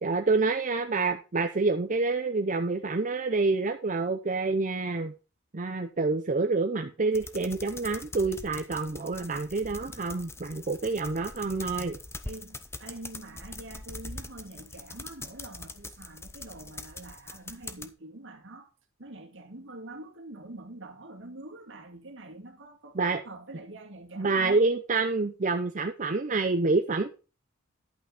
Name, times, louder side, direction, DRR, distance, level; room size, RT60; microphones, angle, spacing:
voice 1, 0.0-5.1 5.5-12.0 23.0-23.2 24.2-27.1, right 3 dB, 40° right, 0.7 m, -27 dB
sound 1, 7.1-17.9, left 2 dB, 10° left, 0.8 m, -43 dB
voice 2, 12.2-18.7 19.0-24.6, right 2 dB, 65° right, 2.0 m, -45 dB
11.0 x 5.8 x 5.1 m
head